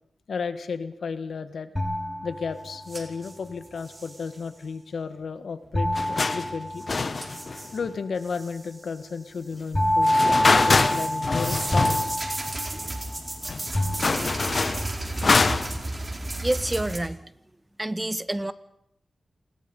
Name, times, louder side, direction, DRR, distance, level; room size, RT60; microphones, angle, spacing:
voice 1, 0.3-1.7 2.2-6.9 7.7-12.1 14.3-14.5, left 5 dB, 80° left, 11 dB, 1.7 m, -33 dB
sound 1, 1.8-3.0 5.7-7.4 9.7-13.3 13.7-14.7, left 1 dB, 15° left, 5.5 m, -26 dB
sound 2, 2.9-4.4 6.7-6.8 7.2-7.8 8.2-9.0 9.4-10.1 10.8-17.0, right 2 dB, 35° right, 4.9 m, -34 dB
sound 3, 5.9-6.5 6.9-7.9 10.0-12.2 12.5-12.6 13.2-13.3 13.4-15.8, left 3 dB, 55° left, 1.6 m, -24 dB
voice 2, 16.4-17.2 17.8-18.5, right 1 dB, 20° right, 13 dB, 1.5 m, -27 dB
28.0 x 21.0 x 5.5 m, 0.76 s
cardioid pair, 45°, 0 cm